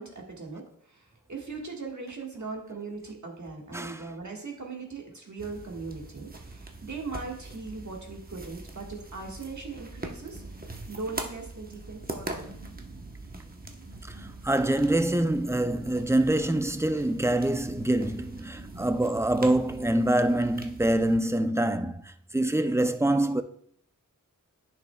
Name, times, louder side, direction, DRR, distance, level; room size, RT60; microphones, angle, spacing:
voice 1, 0.0-10.4 10.9-12.6, right 4 dB, 60° right, 1.5 m, -39 dB
voice 2, 3.7-4.1 14.1-23.4, right 1 dB, 10° right, 0.4 m, -25 dB
sound 1, 5.4-21.2, right 2 dB, 25° right, 0.8 m, -42 dB
10.5 x 6.1 x 2.2 m
wide cardioid pair, 80°, 33 cm